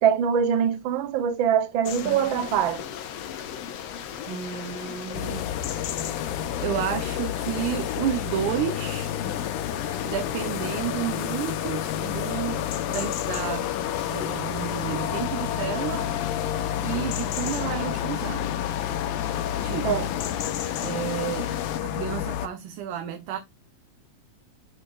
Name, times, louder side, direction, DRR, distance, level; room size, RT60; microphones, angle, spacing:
voice 1, 0.0-2.9 19.8-20.1, right 8 dB, 70° right, 1.1 m, -23 dB
sound 1, 1.8-21.8, left 9 dB, 65° left, 2.0 m, -36 dB
voice 2, 4.3-5.5 6.6-9.1 10.0-13.7 14.1-16.1 16.8-18.7 19.6-20.1 20.8-21.5 21.8-23.4, right 10 dB, 85° right, 2.4 m, -31 dB
sound 2, 5.1-22.5, left 11 dB, 90° left, 2.4 m, -30 dB
10.0 x 6.7 x 2.5 m
omnidirectional pair, 3.5 m